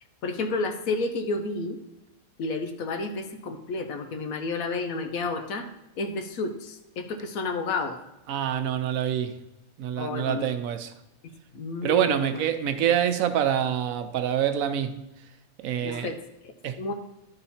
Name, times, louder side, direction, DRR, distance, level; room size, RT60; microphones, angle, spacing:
voice 1, 0.2-1.8 2.4-5.7 6.0-8.0 10.0-10.5 11.5-12.4 15.8-16.5 16.8-16.9, left 3 dB, 75° left, 1.2 m, -31 dB
voice 2, 8.3-9.4 9.8-10.9 11.8-15.0 15.6-16.1 16.6-16.9, right 10 dB, 75° right, 1.0 m, -26 dB
11.0 x 3.9 x 4.2 m
omnidirectional pair, 1.5 m